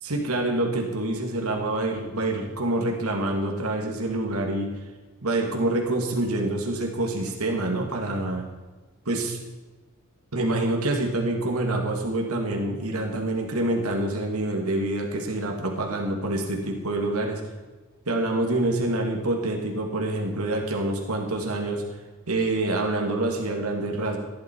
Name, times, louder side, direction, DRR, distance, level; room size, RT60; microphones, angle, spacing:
voice 1, 0.0-4.7 5.2-8.4 9.1-9.4 10.3-17.4 18.1-21.8 22.3-24.2, right 2 dB, 90° right, 1 dB, 2.2 m, -26 dB
15.0 x 11.0 x 4.6 m, 1.3 s
head